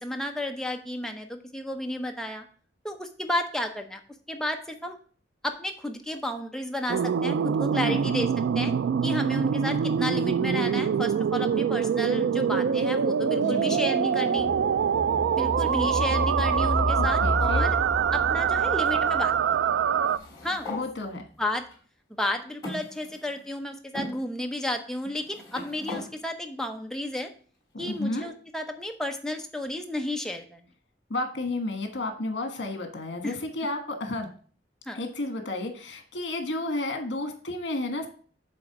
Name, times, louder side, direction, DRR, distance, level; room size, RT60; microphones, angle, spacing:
voice 1, 0.0-2.5 2.8-4.0 4.3-5.0 5.4-8.3 8.6-8.7 9.0-14.5 15.3-17.8 18.1-19.7 20.4-20.7 21.4-21.7 22.1-27.3 27.8-30.6 33.2-33.4 34.9-35.0, left 1 dB, 5° left, 4 dB, 0.7 m, -32 dB
sound 1, 6.9-20.2, right 7 dB, 75° right, 0.3 m, -25 dB
voice 2, 7.8-8.2 13.4-13.8 16.9-17.7 20.7-21.2 27.7-28.3 31.1-34.3 34.9-38.1, left 2 dB, 70° left, 5 dB, 1.5 m, -32 dB
sound 2, 14.4-20.0 20.4-20.5, left 2 dB, 50° left, 0.8 m, -31 dB
sound 3, 20.0-20.9 21.7-21.8 22.6-23.5 23.9-24.1 25.0-26.1, left 2 dB, 20° left, 3.6 m, -38 dB
7.6 x 3.4 x 5.9 m, 0.43 s
head